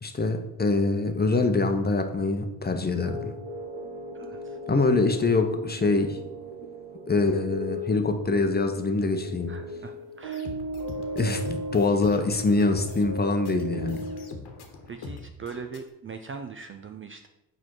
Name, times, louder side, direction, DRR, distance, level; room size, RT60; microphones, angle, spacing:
voice 1, 0.0-3.3 4.7-6.2 7.1-9.5 11.1-14.1, left 3 dB, 20° left, 6 dB, 0.9 m, -24 dB
sound 1, 2.9-14.3, equal, 65° right, 1.6 m, -37 dB
voice 2, 4.1-4.6 9.5-10.5 14.9-17.3, right 5 dB, 25° right, 6 dB, 0.5 m, -41 dB
sound 2, 10.3-15.8, left 4 dB, 50° left, 1.3 m, -42 dB
6.2 x 4.5 x 4.5 m, 0.91 s
hypercardioid pair, 50°, 48 cm